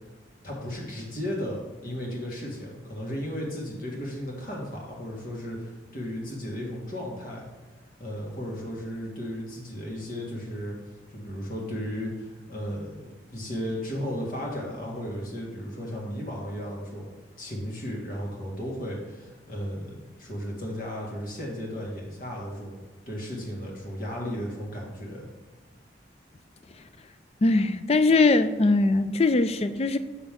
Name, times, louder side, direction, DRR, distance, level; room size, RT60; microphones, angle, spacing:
voice 1, 0.4-7.5 8.0-10.8 11.1-17.1 17.4-22.7 23.1-25.3, equal, 50° left, 1.9 m, -35 dB
voice 2, 27.4-30.0, left 3 dB, 35° left, 0.4 m, -21 dB
6.9 x 6.1 x 3.7 m
head